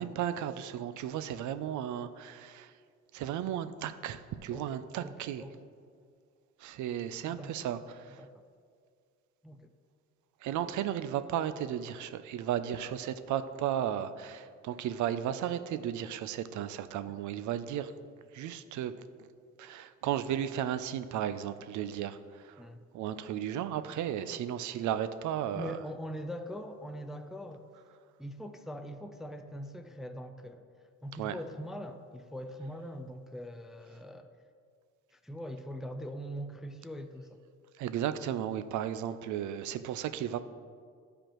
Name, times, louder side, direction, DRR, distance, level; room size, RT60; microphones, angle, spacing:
voice 1, 0.0-2.7 3.1-5.4 6.6-7.8 10.4-17.9 18.3-18.9 19.6-22.2 22.9-25.8 31.2-31.3 37.8-40.4, right 10 dB, 75° right, 12 dB, 0.5 m, -34 dB
voice 2, 4.5-5.6 7.2-7.6 8.2-8.5 9.4-9.7 22.6-22.9 25.5-27.6 28.2-30.7 31.0-34.3 35.1-37.4, equal, ahead, 7 dB, 0.3 m, -42 dB
11.0 x 5.0 x 3.0 m, 2.1 s
cardioid pair, 90°, 30 cm